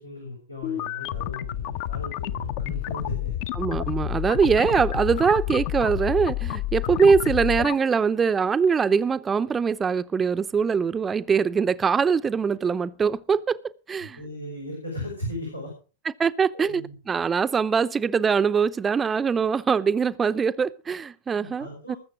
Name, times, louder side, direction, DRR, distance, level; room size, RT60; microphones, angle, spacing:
voice 1, 0.0-3.4 4.0-4.3 14.0-15.7 16.5-16.9 21.3-22.0, left 1 dB, 90° left, 5.9 m, -36 dB
sound 1, 0.6-7.7, left 14 dB, 50° left, 0.7 m, -30 dB
voice 2, 3.6-13.6 13.9-14.2 16.2-22.0, right 6 dB, 20° right, 0.6 m, -23 dB
20.5 x 7.3 x 4.8 m
figure-of-eight pair, 90°, 0 cm